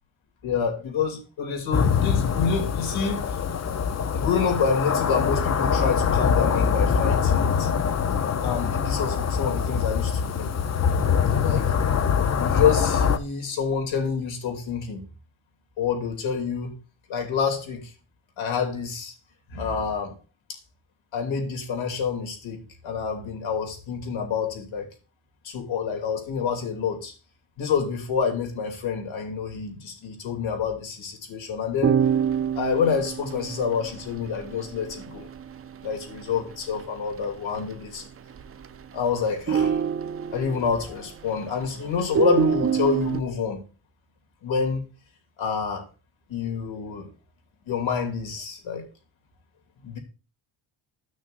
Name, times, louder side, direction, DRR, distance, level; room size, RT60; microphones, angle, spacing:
voice 1, 0.4-3.4 4.1-7.7 8.4-10.5 11.3-11.7 12.4-15.0 15.8-16.7 17.1-17.9 18.4-19.1 19.5-20.1 20.5-20.6 21.1-24.9 25.4-27.1 27.6-32.0 32.6-35.3 35.8-38.0 38.9-39.8 40.3-43.6 44.4-44.8 45.4-45.8 46.3-47.1 47.7-48.9 49.8-50.0, left 6 dB, 70° left, 2.8 m, -27 dB
sound 1, 1.7-13.2, left 6 dB, 35° left, 0.7 m, -23 dB
sound 2, 31.8-36.9 37.1-37.2 37.5-38.0 38.3-39.0 39.3-41.6 42.0-43.2, right 7 dB, 30° right, 0.5 m, -26 dB
13.0 x 6.3 x 2.6 m
cardioid pair, 110°, 48 cm